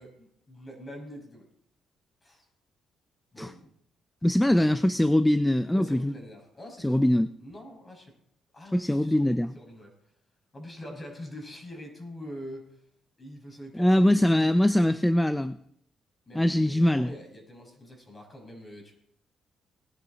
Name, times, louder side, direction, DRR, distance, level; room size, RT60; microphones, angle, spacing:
voice 1, 0.0-1.5 2.2-2.4 3.3-3.7 4.4-4.8 5.7-7.1 7.4-8.1 8.5-9.9 10.5-12.8 13.2-14.6 16.3-18.9, equal, 25° left, 2 dB, 5.8 m, -44 dB
voice 2, 4.2-6.1 6.8-7.3 8.7-9.5 13.7-15.6 16.3-17.1, left 1 dB, 5° left, 12 dB, 0.5 m, -22 dB
19.0 x 11.0 x 4.0 m, 0.71 s
cardioid pair, 90°, 0 cm